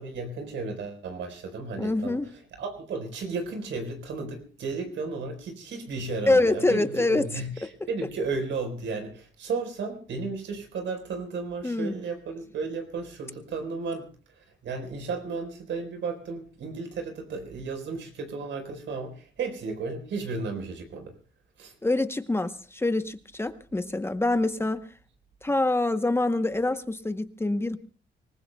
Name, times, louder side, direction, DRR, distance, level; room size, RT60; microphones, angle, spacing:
voice 1, 0.0-2.2 2.5-14.1 14.6-21.1 21.6-21.7, right 4 dB, 85° right, 5 dB, 4.2 m, -34 dB
voice 2, 1.8-2.3 6.3-7.3 11.6-11.9 21.8-24.9 25.4-27.8, left 2 dB, 15° left, 10 dB, 0.8 m, -25 dB
25.5 x 19.5 x 2.2 m, 0.40 s
cardioid pair, 130°, 19 cm